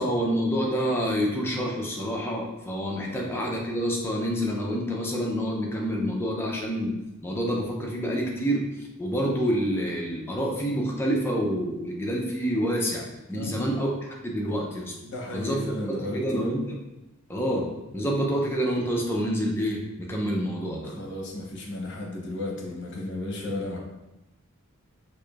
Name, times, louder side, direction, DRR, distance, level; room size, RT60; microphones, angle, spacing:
voice 1, 0.0-6.9 7.2-8.6 9.0-14.9 15.3-15.6 16.0-16.8 17.3-17.7 17.9-19.8 20.1-20.9, equal, 10° left, -1 dB, 0.5 m, -27 dB
voice 2, 3.1-3.5 13.3-13.7 15.0-16.5 20.8-23.8, left 1 dB, 55° left, -1 dB, 0.8 m, -34 dB
4.7 x 2.5 x 2.3 m, 1.0 s
head